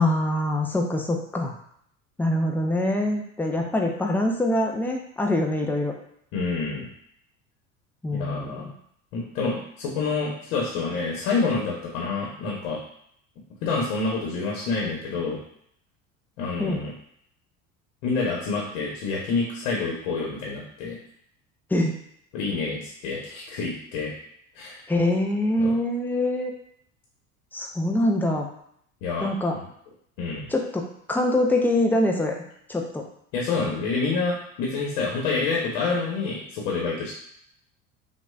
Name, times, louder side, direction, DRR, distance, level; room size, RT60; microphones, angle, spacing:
voice 1, 0.0-1.5 2.2-5.9 8.0-8.6 16.6-16.8 21.7-21.9 24.9-26.5 27.5-28.5 29.2-29.5 30.5-32.3 32.7-33.0, left 1 dB, 5° left, 1 dB, 0.6 m, -24 dB
voice 2, 6.3-6.9 8.2-8.6 9.1-12.8 13.6-15.4 16.4-16.9 18.0-21.0 22.3-24.1 24.5-24.8 25.6-25.8 29.0-29.3 30.2-30.5 33.3-37.1, left 4 dB, 55° left, -2 dB, 1.2 m, -27 dB
6.1 x 2.6 x 2.4 m, 0.68 s
figure-of-eight pair, 70°, 41 cm